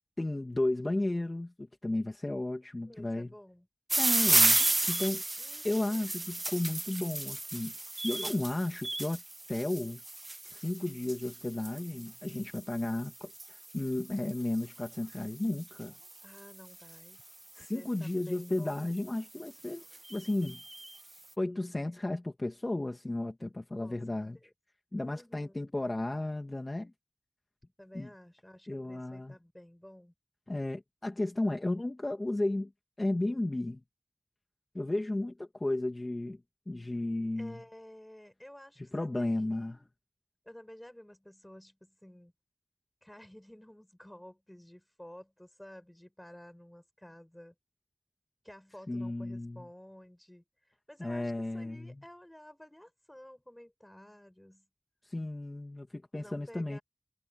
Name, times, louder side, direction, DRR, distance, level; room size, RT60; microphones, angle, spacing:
voice 1, 0.2-3.3 4.0-5.2 5.6-7.7 8.0-9.2 9.5-10.0 10.5-15.9 17.5-19.8 20.1-20.6 21.4-24.4 24.9-26.9 27.9-28.1 28.7-29.4 30.5-32.7 33.0-33.8 34.7-36.4 36.7-37.6 38.9-39.8 48.9-49.6 51.0-52.0 55.0-56.8, left 2 dB, 50° left, 2.5 m, -33 dB
voice 2, 2.8-3.7 5.4-6.1 16.2-17.2 17.7-18.9 23.8-24.0 24.3-24.5 25.0-25.7 27.8-30.1 37.4-39.9 40.4-42.3 43.0-47.5 48.4-54.7 56.2-56.8, left 1 dB, 15° left, 6.7 m, -52 dB
sound 1, 3.9-17.1 18.0-18.4 19.0-19.1 19.3-19.4 19.7-21.0, right 2 dB, 50° right, 0.4 m, -33 dB
wide cardioid pair, 40°, 0 cm